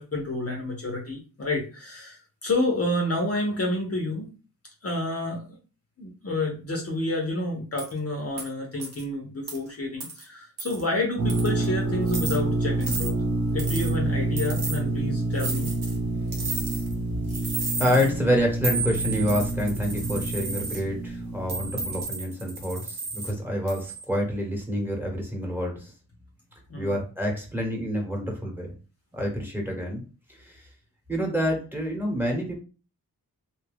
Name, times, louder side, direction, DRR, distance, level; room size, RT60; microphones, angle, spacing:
voice 1, 0.0-4.3 4.8-5.5 6.0-13.1 13.5-15.7 26.7-27.0, left 2 dB, 40° left, 0 dB, 0.7 m, -29 dB
sound 1, 7.8-7.9 8.4-8.5 8.8-9.0 9.5-9.6 10.0-10.2 10.6-10.8 11.3-11.6 12.1-12.4 12.8-13.1 13.6-13.9 14.4-14.8 15.4-16.0 16.3-16.9 17.3-18.1 18.6-20.8 21.5-23.3 23.7-24.0, right 3 dB, 85° right, 0.9 m, -33 dB
sound 2, 11.2-22.0, right 2 dB, 50° right, 1.0 m, -28 dB
voice 2, 17.8-25.9 26.8-28.7 29.1-30.0 30.3-30.7 31.1-32.6, equal, 5° right, 1 dB, 1.1 m, -27 dB
2.8 x 2.3 x 3.3 m, 0.35 s
wide cardioid pair, 75°, 37 cm